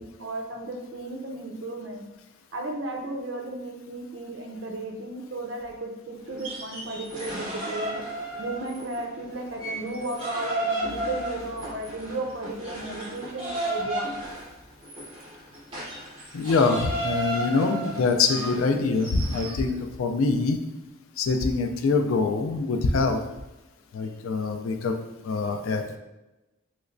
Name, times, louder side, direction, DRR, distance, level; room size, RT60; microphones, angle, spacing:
voice 1, 0.0-2.0 2.5-8.0 8.4-14.1, right 2 dB, 60° right, 2 dB, 0.5 m, -34 dB
sound 1, 6.3-9.0 9.3-19.6, right 1 dB, 25° right, 1.1 m, -33 dB
voice 2, 16.3-20.6 21.2-23.2 23.9-25.0 25.2-26.0, left 4 dB, 85° left, 6 dB, 0.4 m, -24 dB
3.1 x 3.0 x 2.5 m, 1.0 s
head